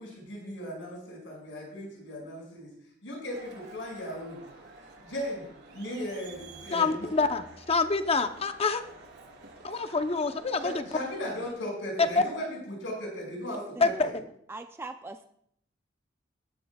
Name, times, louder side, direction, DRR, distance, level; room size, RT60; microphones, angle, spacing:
voice 1, 0.0-2.7 3.0-4.4 5.0-7.1 9.7-9.8 10.6-14.1, equal, 80° left, -1 dB, 5.8 m, -37 dB
Crowd, 3.3-11.5, right 3 dB, 65° right, 3.0 m, -50 dB
voice 2, 6.7-8.8 9.6-10.7 12.0-12.1 13.8-14.1, left 4 dB, 30° left, 8 dB, 0.7 m, -26 dB
voice 3, 13.5-14.1 14.5-15.2, right 2 dB, 15° right, 6 dB, 0.4 m, -42 dB
18.5 x 12.0 x 2.3 m, 0.69 s
head